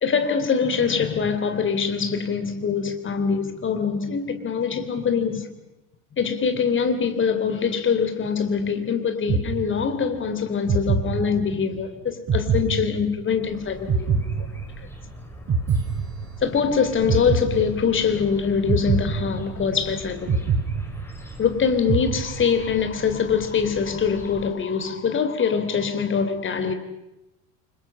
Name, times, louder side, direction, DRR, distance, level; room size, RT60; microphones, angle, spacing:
voice 1, 0.0-5.5 6.2-14.5 16.4-20.5 21.4-26.7, left 6 dB, 25° left, 3.4 m, -23 dB
sound 1, 9.3-10.1 10.7-11.7 12.3-13.4 13.9-15.1 15.5-16.7 17.1-18.1 18.7-19.8 20.3-21.5 21.9-22.7, right 5 dB, 30° right, 4.8 m, -25 dB
sound 2, 13.5-24.5, equal, 5° left, 5.0 m, -41 dB
30.0 x 25.0 x 5.7 m
figure-of-eight pair, 75°, 46 cm